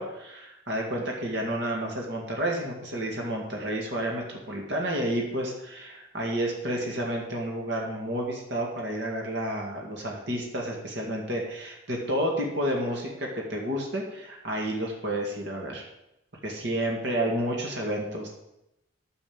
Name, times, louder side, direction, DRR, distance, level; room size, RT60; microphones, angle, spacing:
voice 1, 0.0-15.8 16.4-18.3, right 1 dB, 60° right, -1 dB, 2.0 m, -30 dB
9.4 x 7.0 x 7.1 m, 0.89 s
head